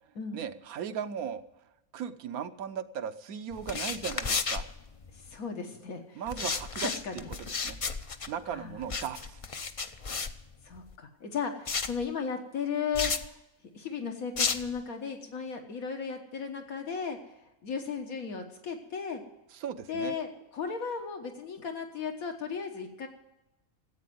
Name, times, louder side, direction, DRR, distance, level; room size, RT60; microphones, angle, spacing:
voice 1, 0.3-1.4 1.9-4.6 6.1-7.8 8.3-9.4 19.5-20.2, right 8 dB, 85° right, 11 dB, 1.2 m, -37 dB
sound 1, 3.5-5.4 6.3-10.9 11.6-12.0 12.9-13.3 14.4-14.8, left 4 dB, 45° left, 0.4 m, -33 dB
voice 2, 5.1-6.5 6.8-7.3 8.5-8.9 10.6-13.2 13.7-17.2 17.6-19.2 19.9-23.1, left 6 dB, 75° left, 4 dB, 1.7 m, -35 dB
15.0 x 8.5 x 9.3 m, 0.93 s
omnidirectional pair, 1.5 m